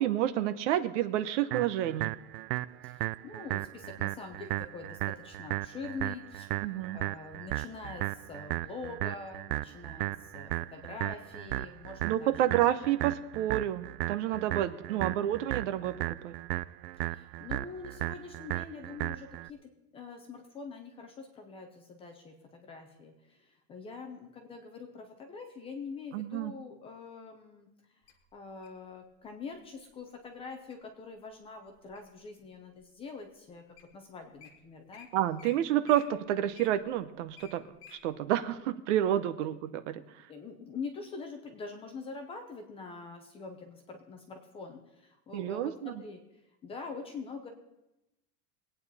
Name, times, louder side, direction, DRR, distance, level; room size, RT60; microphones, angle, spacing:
voice 1, 0.0-2.1 6.6-7.0 12.0-16.0 16.2-16.3 26.1-26.5 35.1-37.6 37.9-40.0 45.3-45.9, right 12 dB, 50° right, 12 dB, 0.8 m, -29 dB
sound 1, 1.5-19.5, right 18 dB, 85° right, 0.5 m, -36 dB
voice 2, 2.8-12.3 14.9-15.2 17.1-27.7 28.3-35.1 39.2-39.3 40.3-46.2 46.6-47.5, left 4 dB, 10° left, 4 dB, 0.6 m, -44 dB
Wild animals, 28.1-28.8 29.5-29.8 30.3-30.8 31.3-32.2 32.8-32.9 33.5-33.6 33.8-33.9 34.2-34.5 34.9-35.1 35.4-35.5 35.8-38.0 38.5-38.6, left 7 dB, 30° left, 1.5 m, -53 dB
21.5 x 9.0 x 4.1 m, 0.93 s
supercardioid pair, 175°, 46 cm